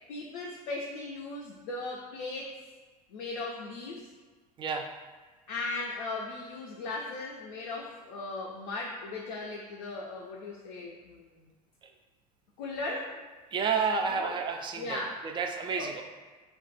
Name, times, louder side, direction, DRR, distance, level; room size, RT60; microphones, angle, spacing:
voice 1, 0.0-2.6 3.1-4.1 5.5-11.4 12.6-13.3 14.2-14.4 14.8-15.2 15.8-15.9, left 2 dB, 65° left, -3 dB, 0.5 m, -38 dB
voice 2, 13.5-16.0, right 5 dB, 25° right, 3 dB, 0.3 m, -30 dB
2.3 x 2.2 x 3.8 m, 1.3 s
figure-of-eight pair, 75°, 20 cm